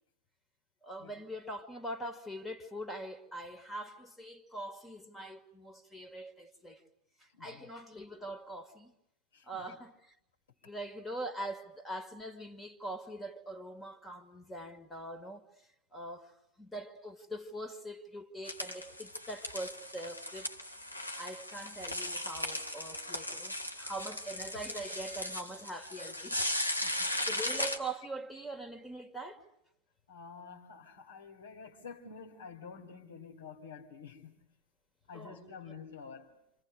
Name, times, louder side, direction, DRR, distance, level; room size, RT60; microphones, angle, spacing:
voice 1, 0.8-6.8 7.2-8.9 9.4-10.0 10.6-15.5 15.9-20.5 21.2-26.5 27.3-29.5 35.1-35.4, right 1 dB, 10° left, 2.5 m, -43 dB
voice 2, 7.3-7.7 9.3-9.8 26.7-27.2 30.1-34.4 35.1-36.3, left 5 dB, 65° left, 4.7 m, -49 dB
sound 1, 18.4-27.8, left 1 dB, 90° left, 2.3 m, -37 dB
28.5 x 27.5 x 6.7 m
figure-of-eight pair, 90°, 0 cm